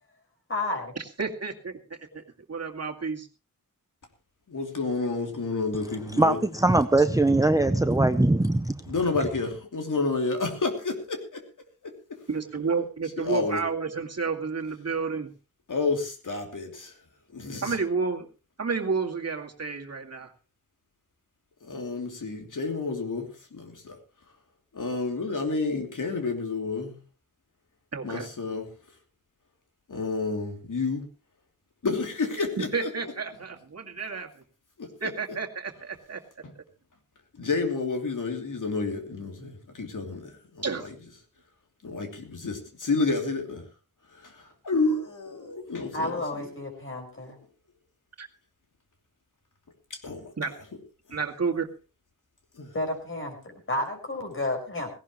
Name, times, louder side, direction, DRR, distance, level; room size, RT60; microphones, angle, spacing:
voice 1, 0.5-0.9 45.9-47.4 52.7-54.9, left 2 dB, 35° left, 5.2 m, -31 dB
voice 2, 1.2-2.2 2.5-3.3 12.3-15.3 17.6-18.3 18.6-20.3 27.9-28.3 32.6-34.3 35.0-36.2 40.6-40.9 48.2-48.3 50.4-50.5 51.1-51.7, right 5 dB, 45° right, 2.2 m, -30 dB
voice 3, 4.5-6.4 8.9-11.4 11.8-11.9 13.2-13.6 15.7-16.9 17.3-17.8 21.6-24.0 24.7-27.0 28.0-28.7 29.9-31.1 31.8-33.1 34.8-35.1 37.4-40.9 41.8-43.6 44.1-46.5 49.9-50.3 52.6-52.7, left 3 dB, 65° left, 3.1 m, -30 dB
voice 4, 6.2-8.9, right 2 dB, 10° right, 0.7 m, -21 dB
17.5 x 17.5 x 3.1 m
wide cardioid pair, 125°, 34 cm